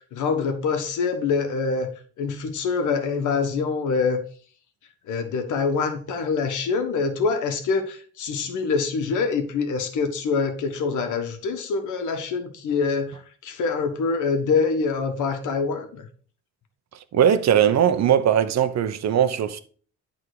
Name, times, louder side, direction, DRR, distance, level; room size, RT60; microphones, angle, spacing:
voice 1, 0.1-1.9 2.2-4.2 5.1-16.1, left 4 dB, 80° left, 1.5 m, -25 dB
voice 2, 17.1-19.6, right 9 dB, 60° right, 0.9 m, -19 dB
11.0 x 3.7 x 4.9 m
cardioid pair, 90°, 30 cm